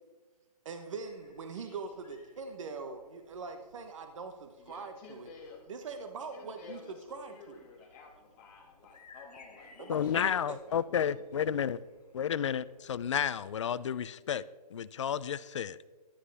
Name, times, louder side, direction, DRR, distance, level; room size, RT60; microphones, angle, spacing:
voice 1, 0.6-5.3 5.7-7.6 9.8-10.6, right 4 dB, 50° right, 7 dB, 1.0 m, -42 dB
sound 1, 1.0-13.9, left 4 dB, 65° left, 2.5 m, -62 dB
voice 2, 4.6-5.6 6.3-10.3 10.7-11.6, left 4 dB, 20° left, -1 dB, 1.9 m, -52 dB
voice 3, 9.9-11.8 12.1-14.5 14.7-15.8, left 8 dB, 50° left, 17 dB, 0.4 m, -31 dB
14.5 x 10.0 x 3.4 m, 1.3 s
hypercardioid pair, 165°, 20 cm